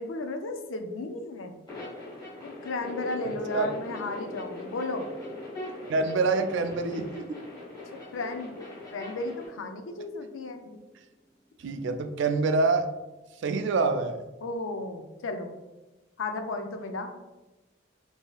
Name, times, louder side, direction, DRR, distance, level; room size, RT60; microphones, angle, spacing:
voice 1, 0.0-1.6 2.4-5.1 8.1-10.6 14.4-15.5 16.2-17.1, left 2 dB, 85° left, 6 dB, 0.5 m, -34 dB
sound 1, 1.7-9.5, left 2 dB, 20° left, 1.4 m, -43 dB
sound 2, 2.8-9.9, left 1 dB, 25° right, 0.9 m, -42 dB
voice 2, 5.9-7.4 11.6-12.9 13.4-14.3, right 3 dB, 65° right, 7 dB, 0.3 m, -26 dB
4.8 x 2.7 x 2.3 m, 1.1 s
head